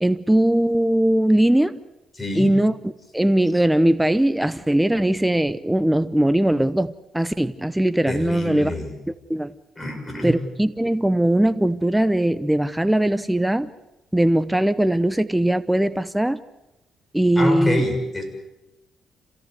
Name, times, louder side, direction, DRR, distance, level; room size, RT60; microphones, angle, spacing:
voice 1, 0.0-1.8 2.3-2.7 3.1-8.7 9.1-9.5 10.2-13.7 14.1-16.4 17.1-17.8, right 1 dB, 5° right, 13 dB, 0.8 m, -20 dB
voice 2, 2.2-2.5 8.1-9.0 9.8-10.3 17.4-18.2, left 1 dB, 15° left, 3 dB, 6.2 m, -26 dB
27.0 x 17.0 x 8.0 m, 0.96 s
cardioid pair, 90°, 0 cm